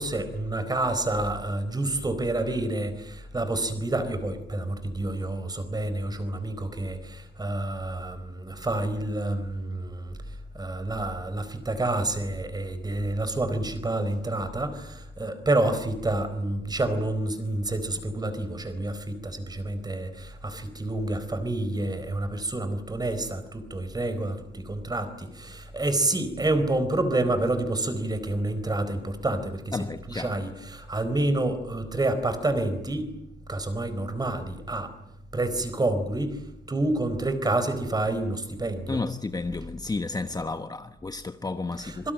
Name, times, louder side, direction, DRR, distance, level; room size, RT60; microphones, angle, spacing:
voice 1, 0.0-10.2 10.5-29.8 30.1-33.1 33.5-34.9 35.3-36.4 36.7-39.0 41.8-42.1, right 2 dB, 20° right, 4.3 m, -28 dB
voice 2, 29.7-30.3 38.9-42.1, left 3 dB, 20° left, 1.2 m, -32 dB
26.0 x 24.5 x 8.9 m
wide cardioid pair, 155°, 18 cm